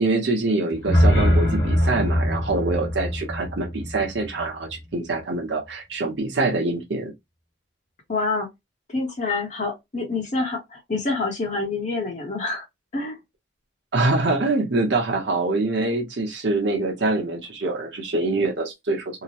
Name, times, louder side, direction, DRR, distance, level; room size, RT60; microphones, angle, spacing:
voice 1, 0.0-7.1 13.9-19.0, right 2 dB, 70° right, 0.9 m, -24 dB
sound 1, 0.7-4.8, equal, 60° left, 1.3 m, -22 dB
voice 2, 8.1-8.5 8.9-12.6 12.9-13.2, left 3 dB, 40° left, 0.8 m, -27 dB
2.9 x 2.0 x 2.8 m
head